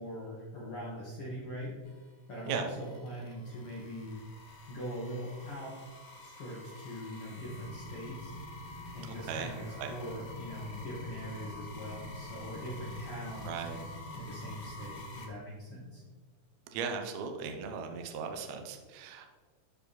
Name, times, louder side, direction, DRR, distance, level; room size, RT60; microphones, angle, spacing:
voice 1, 0.0-1.7 2.3-4.2 4.7-5.8 6.2-8.4 8.9-13.7 14.1-16.0, equal, 50° left, -6 dB, 2.1 m, -41 dB
sound 1, 1.8-15.2, left 2 dB, 70° left, 1.0 m, -50 dB
sound 2, 7.4-14.9, equal, 90° left, 2.8 m, -47 dB
voice 2, 13.4-13.8 16.7-19.3, right 6 dB, 70° right, 4 dB, 1.8 m, -37 dB
12.0 x 4.8 x 4.2 m, 1.5 s
omnidirectional pair, 4.0 m